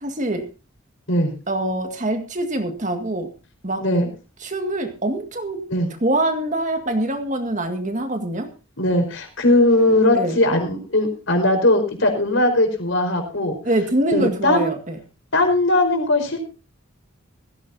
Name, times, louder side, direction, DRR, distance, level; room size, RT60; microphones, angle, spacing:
voice 1, 0.0-0.5 1.5-3.3 3.6-3.8 4.4-5.6 6.0-8.5 9.8-10.4 13.6-15.0, right 1 dB, 35° right, 6 dB, 2.0 m, -24 dB
voice 2, 8.8-13.6 14.1-14.7 15.3-16.4, left 1 dB, 65° left, 4 dB, 4.7 m, -19 dB
17.0 x 15.5 x 2.8 m, 0.32 s
head